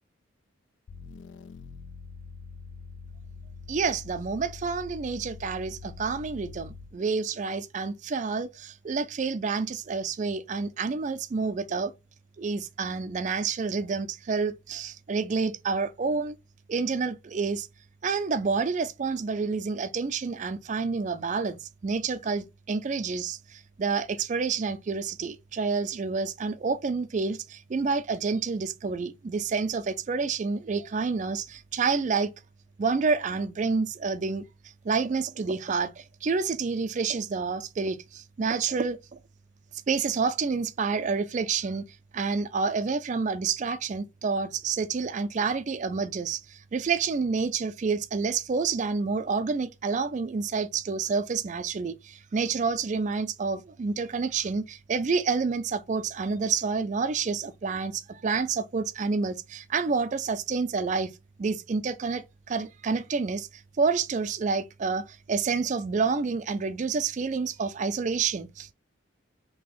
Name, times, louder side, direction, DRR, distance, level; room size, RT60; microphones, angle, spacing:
sound 1, 0.9-7.1, left 4 dB, 65° left, 0.4 m, -44 dB
voice 1, 3.7-11.9 12.4-16.4 16.7-17.7 18.0-32.3 32.8-34.4 34.8-39.0 39.9-41.8 42.1-61.1 61.4-68.7, right 4 dB, 40° right, 0.3 m, -28 dB
3.9 x 2.8 x 3.0 m
head